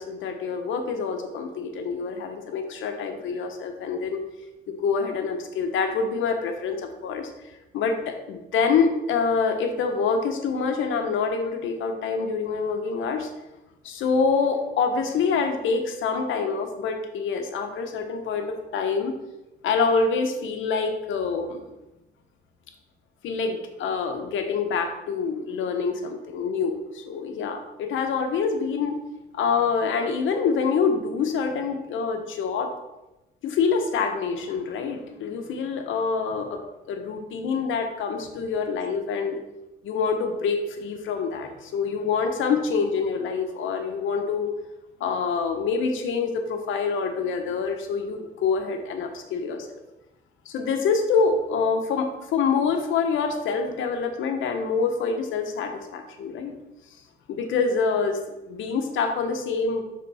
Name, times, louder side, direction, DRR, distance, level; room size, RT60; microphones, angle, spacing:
voice 1, 0.0-4.2 4.7-7.3 7.7-13.3 13.8-19.1 19.6-21.6 23.2-29.0 29.3-32.7 33.4-39.4 39.8-44.5 45.0-49.8 50.5-56.5 57.3-58.2 58.5-59.8, left 5 dB, 80° left, 6 dB, 0.9 m, -26 dB
7.5 x 3.7 x 4.1 m, 0.97 s
cardioid pair, 90°, 20 cm